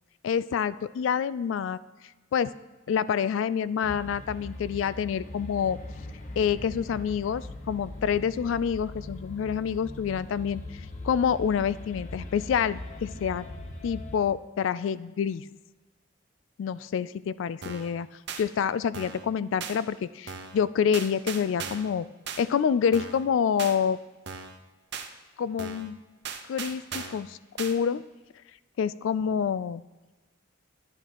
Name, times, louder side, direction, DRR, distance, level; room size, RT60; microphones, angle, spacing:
voice 1, 0.2-1.8 2.3-2.5 2.9-5.8 6.4-13.5 13.8-15.5 16.6-18.1 18.4-22.1 22.4-24.0 25.4-26.0 26.5-28.0 28.8-29.8, left 7 dB, 70° left, 17 dB, 0.3 m, -27 dB
sound 1, 3.8-14.2, left 1 dB, 40° left, 0.9 m, -41 dB
sound 2, 17.6-17.9 18.3-18.4 18.9-19.3 19.6-19.8 20.3-20.6 20.9-21.9 22.3-22.4 22.9-23.3 23.6-23.8 24.3-24.6 24.9-25.1 25.6-25.9 26.2-27.2 27.6-27.7, right 6 dB, 55° right, 0.8 m, -37 dB
11.5 x 10.5 x 3.0 m, 1.2 s
head